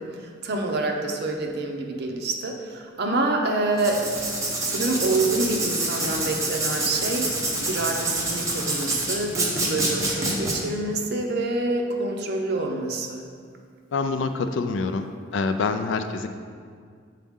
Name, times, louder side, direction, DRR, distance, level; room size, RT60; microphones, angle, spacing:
voice 1, 0.0-4.0 4.6-7.3 7.7-13.2, right 2 dB, 55° right, 2 dB, 0.7 m, -27 dB
Writing, 3.7-10.5, right 2 dB, 15° right, 0.9 m, -27 dB
voice 2, 13.9-15.1 15.3-16.3, left 4 dB, 65° left, 8 dB, 0.4 m, -26 dB
7.5 x 4.0 x 3.6 m, 2.1 s
head